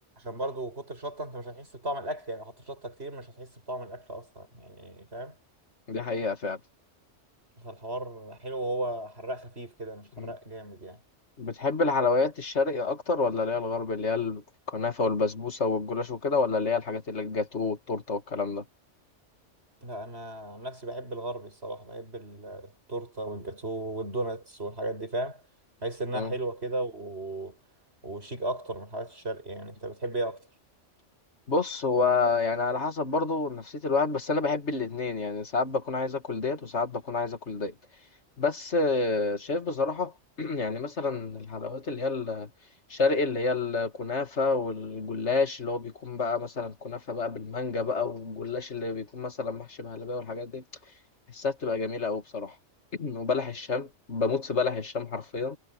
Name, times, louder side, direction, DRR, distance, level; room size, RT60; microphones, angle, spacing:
voice 1, 0.2-5.4 7.6-11.0 19.8-25.4 25.8-27.6 28.0-30.5, right 1 dB, 60° right, 7.7 m, -35 dB
voice 2, 5.9-6.6 10.2-10.3 11.4-14.4 14.7-18.7 26.1-26.3 31.5-37.7 38.4-40.1 40.4-42.5 42.9-50.6 51.3-52.5 53.0-55.6, left 4 dB, 65° left, 2.5 m, -29 dB
omnidirectional pair, 1.2 m